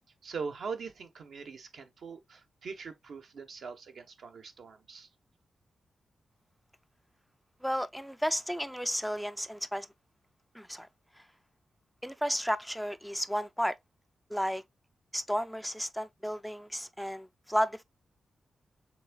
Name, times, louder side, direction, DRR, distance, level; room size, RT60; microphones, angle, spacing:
voice 1, 0.2-5.1, right 5 dB, 75° right, 1.0 m, -42 dB
voice 2, 7.6-9.9 10.5-10.9 12.0-13.8 14.3-14.6 15.1-17.8, equal, ahead, 0.3 m, -33 dB
6.3 x 3.6 x 2.3 m
cardioid pair, 85°, 0 cm